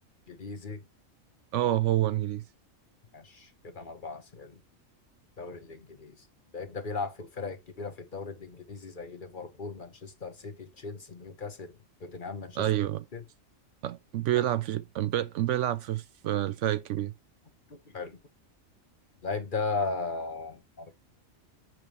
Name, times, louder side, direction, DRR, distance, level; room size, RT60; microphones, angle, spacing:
voice 1, 0.3-0.8 3.1-4.6 5.4-6.3 6.5-11.7 12.0-12.7 13.1-13.2 14.4-14.5 17.7-18.2 19.2-21.0, left 4 dB, 40° left, 1.3 m, -37 dB
voice 2, 1.5-2.4 12.6-13.0 13.8-17.1, right 13 dB, 70° right, 0.9 m, -28 dB
6.8 x 6.1 x 3.0 m
omnidirectional pair, 1.4 m